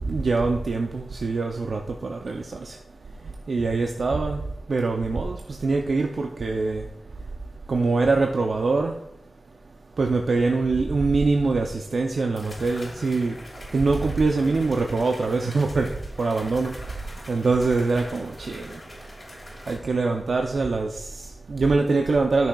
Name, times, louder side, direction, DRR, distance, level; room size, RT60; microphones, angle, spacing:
voice 1, 0.0-2.8 3.5-4.4 4.7-6.9 7.7-9.0 10.0-13.4 13.7-18.8 19.7-22.5, right 3 dB, 80° right, 0.5 m, -24 dB
sound 1, 11.4-11.5 12.4-19.8, left 1 dB, 30° left, 3.4 m, -43 dB
13.0 x 6.1 x 2.3 m
wide cardioid pair, 80°, 0 cm